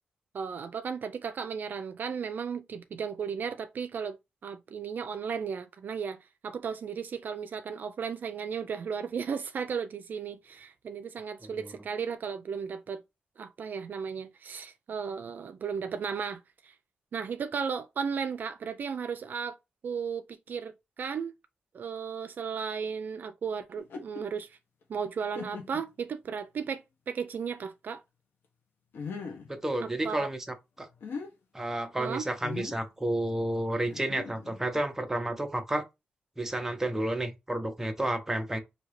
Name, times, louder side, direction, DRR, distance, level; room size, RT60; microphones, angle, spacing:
voice 1, 0.3-4.2 4.4-13.0 13.4-16.7 17.1-19.6 19.8-21.3 21.7-24.6 24.9-28.0 29.8-30.3 32.0-32.3, right 6 dB, 60° right, 0.4 m, -35 dB
sound 1, 23.8-24.2 24.8-24.9 25.3-25.9 26.6-26.7 28.9-29.5 30.8-31.3 32.4-32.8 33.8-34.7, left 5 dB, 85° left, 1.0 m, -40 dB
voice 2, 29.5-30.9 31.5-35.8 36.4-38.6, right 1 dB, 10° right, 0.8 m, -31 dB
5.1 x 2.8 x 3.1 m
wide cardioid pair, 130°, 4 cm